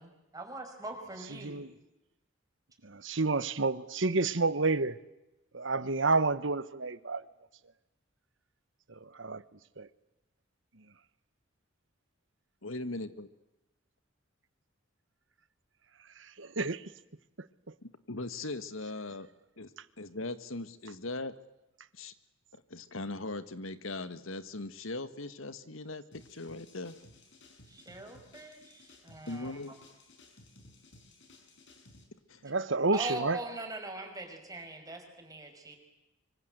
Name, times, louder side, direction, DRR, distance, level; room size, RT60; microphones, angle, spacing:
voice 1, 0.0-1.6 27.7-29.6 32.9-35.8, right 2 dB, 20° right, 4 dB, 5.6 m, -42 dB
voice 2, 2.8-5.0 5.5-7.2 8.9-9.4 9.8-9.9 16.4-16.8 32.4-33.4, right 3 dB, 65° right, 16 dB, 1.3 m, -29 dB
voice 3, 12.6-13.3 17.8-19.3 19.6-19.7 20.0-21.3 21.9-22.1 22.5-27.0 29.3-29.7 32.3-32.5, left 2 dB, 90° left, 12 dB, 1.8 m, -39 dB
sound 1, 26.1-32.0, left 2 dB, 65° left, 6.3 m, -57 dB
25.5 x 25.0 x 8.1 m, 0.95 s
head